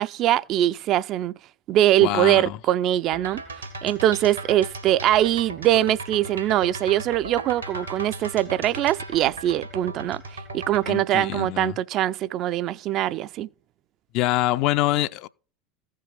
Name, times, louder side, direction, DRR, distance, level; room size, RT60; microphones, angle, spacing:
voice 1, 0.0-1.3 1.7-3.4 3.8-10.2 10.5-13.5, right 13 dB, 45° right, 0.4 m, -22 dB
voice 2, 2.0-2.6 10.9-11.8 14.1-15.3, left 16 dB, 55° left, 0.5 m, -25 dB
sound 1, 3.1-11.0, right 2 dB, 90° right, 1.9 m, -37 dB
15.0 x 5.4 x 5.2 m
figure-of-eight pair, 75°, 0 cm